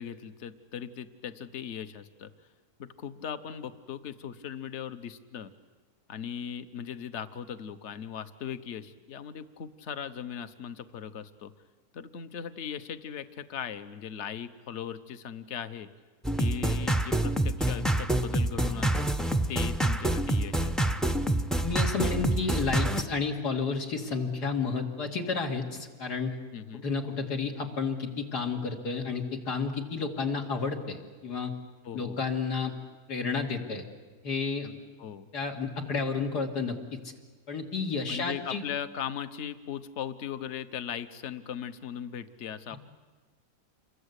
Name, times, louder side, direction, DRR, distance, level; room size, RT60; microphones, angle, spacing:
voice 1, 0.0-2.3 2.8-5.5 6.1-11.5 11.9-15.9 16.4-19.0 19.5-20.8 26.5-26.8 31.8-32.2 35.0-35.3 38.1-42.8, left 8 dB, 50° left, 11 dB, 1.2 m, -38 dB
sound 1, 16.3-23.0, right 1 dB, ahead, 0.4 m, -27 dB
voice 2, 21.6-26.3 26.8-31.5 31.9-32.7 33.1-33.8 34.2-34.8 35.3-37.0 37.5-38.6 42.7-42.8, left 4 dB, 80° left, 2 dB, 3.0 m, -31 dB
28.0 x 22.5 x 8.3 m, 1.4 s
omnidirectional pair, 1.7 m